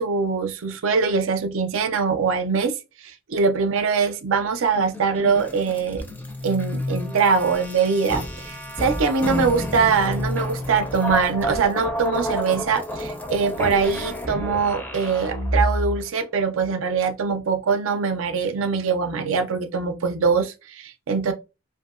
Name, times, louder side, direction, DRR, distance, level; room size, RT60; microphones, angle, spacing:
voice 1, 0.0-2.8 3.0-6.0 6.4-21.3, right 5 dB, 90° right, 0.4 m, -23 dB
sound 1, 4.7-16.0, equal, 10° left, 0.4 m, -29 dB
2.7 x 2.6 x 2.4 m
head